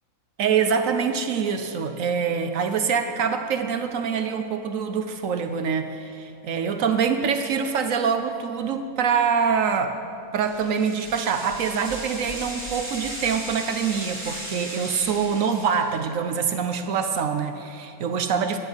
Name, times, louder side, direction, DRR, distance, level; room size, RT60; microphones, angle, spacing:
voice 1, 0.4-10.0 10.3-18.6, right 6 dB, 70° right, 8 dB, 1.1 m, -25 dB
sound 1, 10.4-16.0, right 1 dB, 45° right, 3.1 m, -36 dB
11.0 x 9.8 x 7.7 m, 2.5 s
omnidirectional pair, 1.5 m